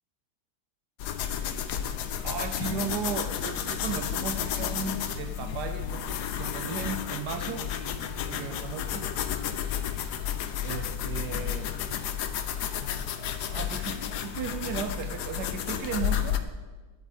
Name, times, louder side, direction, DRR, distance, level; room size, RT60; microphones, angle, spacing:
sound 1, 1.0-16.4, left 9 dB, 75° left, 1.3 m, -32 dB
sound 2, 1.8-11.5, left 6 dB, 35° left, 2.2 m, -49 dB
voice 1, 2.2-7.7 8.3-9.1 10.6-11.7 12.8-12.9 13.5-16.4, right 6 dB, 75° right, 8 dB, 1.2 m, -35 dB
13.0 x 11.0 x 4.2 m, 1.3 s
omnidirectional pair, 1.8 m